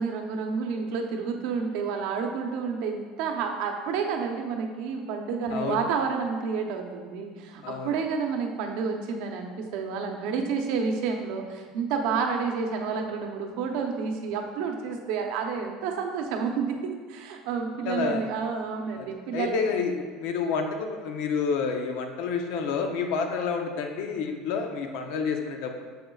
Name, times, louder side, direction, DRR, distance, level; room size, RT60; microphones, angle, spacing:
voice 1, 0.0-19.6, right 5 dB, 60° right, 3 dB, 0.8 m, -30 dB
voice 2, 5.5-5.8 7.6-7.9 17.8-18.2 19.0-19.1 19.3-19.9 20.2-25.9, left 5 dB, 65° left, 4 dB, 0.8 m, -29 dB
7.9 x 6.6 x 2.4 m, 1.5 s
cardioid pair, 170°, 0 cm